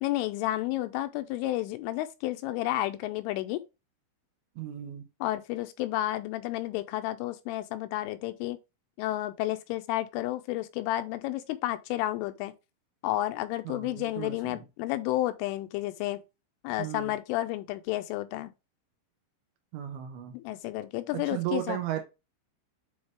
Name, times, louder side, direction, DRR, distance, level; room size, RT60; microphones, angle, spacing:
voice 1, 0.0-3.6 5.2-8.6 9.0-12.5 13.0-16.2 16.6-18.5 20.3-21.8, left 15 dB, 85° left, 3.0 m, -31 dB
voice 2, 4.6-5.1 13.7-14.6 16.8-17.1 19.7-20.4 21.1-22.0, right 12 dB, 75° right, 2.9 m, -35 dB
8.7 x 4.0 x 3.3 m
omnidirectional pair, 5.9 m